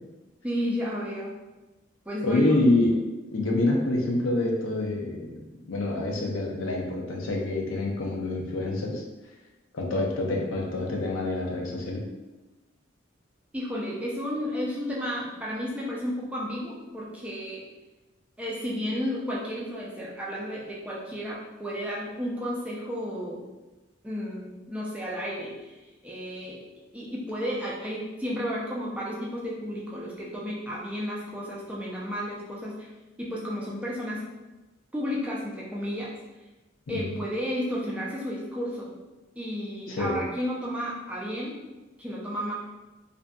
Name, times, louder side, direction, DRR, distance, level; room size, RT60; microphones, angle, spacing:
voice 1, 0.4-1.4 2.1-2.6 13.5-17.6 18.4-23.5 24.0-26.6 26.9-32.9 33.2-34.3 34.9-36.1 36.9-38.9 39.4-41.6 42.0-42.5, equal, 5° right, -5 dB, 0.4 m, -32 dB
voice 2, 2.2-3.0 3.3-9.0 9.7-12.0 36.9-37.1 39.9-40.2, left 2 dB, 85° left, -1 dB, 0.5 m, -26 dB
2.6 x 2.5 x 2.2 m, 1.1 s
head